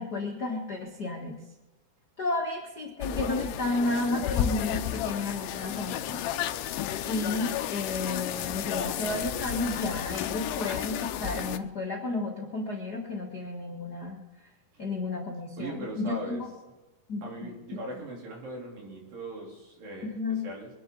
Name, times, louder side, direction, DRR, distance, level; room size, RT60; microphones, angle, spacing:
voice 1, 0.0-1.3 2.2-6.2 7.0-14.2 14.8-16.5 17.1-17.2 20.1-20.4, left 2 dB, 40° left, -2 dB, 1.4 m, -32 dB
sound 1, 3.0-11.6, left 11 dB, 75° left, 2.0 m, -32 dB
voice 2, 15.6-16.4 17.2-20.7, right 2 dB, 65° right, -2 dB, 5.0 m, -39 dB
24.0 x 10.5 x 3.9 m, 1.1 s
omnidirectional pair, 4.3 m